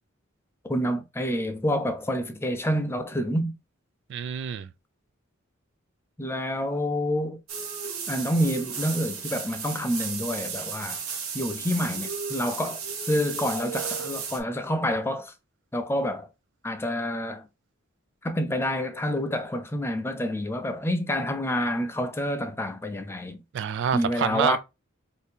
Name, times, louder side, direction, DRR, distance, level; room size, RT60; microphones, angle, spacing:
voice 1, 0.6-3.5 6.2-7.4 8.1-11.0 11.3-12.8 13.1-15.3 15.7-16.3 16.6-17.4 18.2-23.4 23.9-24.6, equal, 10° left, 0.4 m, -28 dB
voice 2, 4.1-4.7 23.5-24.6, right 8 dB, 60° right, 0.3 m, -27 dB
sound 1, 7.5-14.4, right 6 dB, 85° right, 0.9 m, -34 dB
2.8 x 2.7 x 3.5 m
head